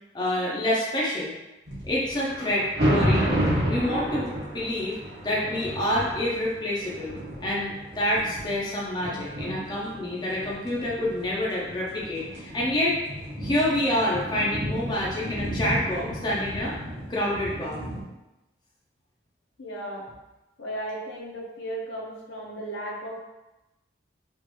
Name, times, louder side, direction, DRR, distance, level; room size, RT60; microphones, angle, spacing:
voice 1, 0.1-1.3 1.8-5.0 5.2-7.2 7.4-13.0 13.4-16.8 17.1-17.9, left 1 dB, 20° left, -5 dB, 0.6 m, -27 dB
sound 1, 1.7-18.0, equal, 60° right, 1.2 m, -31 dB
voice 2, 19.6-20.0 20.6-23.2, right 1 dB, 75° left, -4 dB, 1.0 m, -35 dB
5.3 x 2.6 x 3.0 m, 1.0 s
head